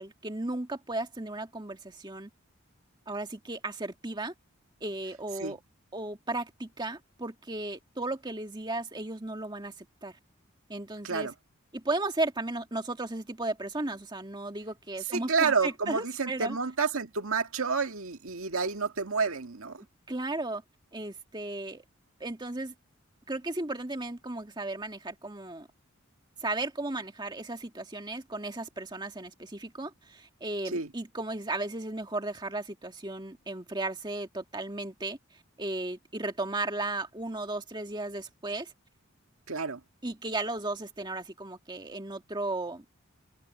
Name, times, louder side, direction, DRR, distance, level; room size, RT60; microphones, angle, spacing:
voice 1, 0.0-2.3 3.1-4.3 4.8-5.6 5.9-10.2 10.7-11.3 11.7-16.6 20.1-20.6 20.9-21.8 22.2-22.7 23.3-25.7 26.4-35.2 35.6-38.7 40.0-43.0, right 2 dB, 20° right, 2.0 m, -35 dB
voice 2, 15.1-19.8 30.7-30.9 39.5-39.8, right 5 dB, 85° right, 1.9 m, -29 dB
head